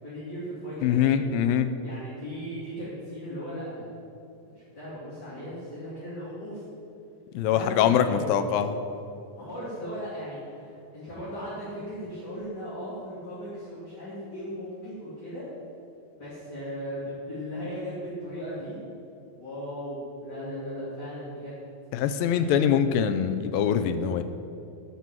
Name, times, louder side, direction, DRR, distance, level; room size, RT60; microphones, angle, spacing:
voice 1, 0.0-1.2 1.8-3.9 4.4-6.6 7.5-8.4 9.3-15.5 16.2-18.8 19.4-21.6 22.0-22.7, equal, 30° left, -10 dB, 3.3 m, -37 dB
voice 2, 0.8-1.7 7.3-8.8 21.9-24.2, left 8 dB, 80° left, 10 dB, 2.3 m, -23 dB
13.5 x 6.0 x 7.7 m, 2.7 s
omnidirectional pair, 4.3 m